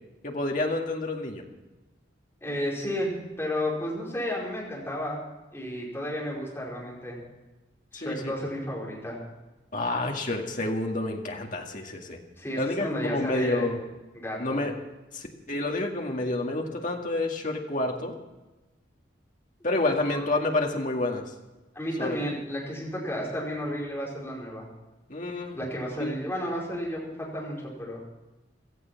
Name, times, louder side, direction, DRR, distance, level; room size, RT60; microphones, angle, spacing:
voice 1, 0.2-1.4 7.9-8.4 9.7-12.2 12.6-13.8 14.4-14.7 15.1-18.1 19.6-21.3 22.0-22.2 25.1-25.6 26.0-26.1, left 2 dB, 45° left, 1 dB, 2.1 m, -29 dB
voice 2, 2.4-5.2 5.5-7.2 7.9-9.2 12.4-13.7 14.1-14.6 19.9-20.3 21.7-24.7 25.5-28.0, equal, 10° left, -4 dB, 5.2 m, -32 dB
16.5 x 14.0 x 5.9 m, 1.1 s
head